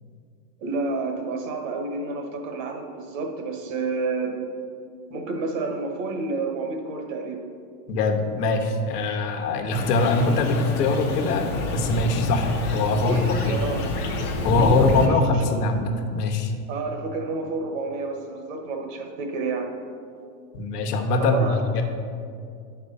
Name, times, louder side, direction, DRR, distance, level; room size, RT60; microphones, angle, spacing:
voice 1, 0.6-4.4 5.1-7.4 12.9-13.9 14.4-15.4 16.7-19.7 21.2-21.6, right 3 dB, 55° right, 4 dB, 1.3 m, -30 dB
voice 2, 7.9-13.6 14.4-16.5 20.5-21.8, left 3 dB, 80° left, 4 dB, 1.2 m, -23 dB
sound 1, 9.7-15.1, left 2 dB, 25° left, 0.7 m, -27 dB
9.2 x 4.8 x 5.4 m, 2.3 s
supercardioid pair, 160°, 47 cm